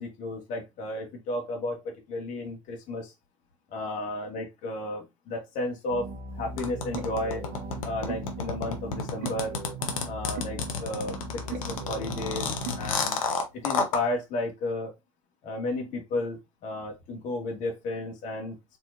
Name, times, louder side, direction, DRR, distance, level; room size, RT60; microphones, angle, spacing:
voice 1, 0.0-3.1 3.7-7.4 7.8-9.6 10.0-12.5 12.8-13.2 13.5-14.9 15.4-18.6, left 2 dB, 45° left, 2.3 m, -33 dB
sound 1, 5.9-12.9, right 3 dB, 60° right, 1.3 m, -38 dB
sound 2, 6.6-14.0, left 5 dB, 80° left, 1.3 m, -30 dB
4.5 x 4.2 x 2.7 m
hypercardioid pair, 100°, 17 cm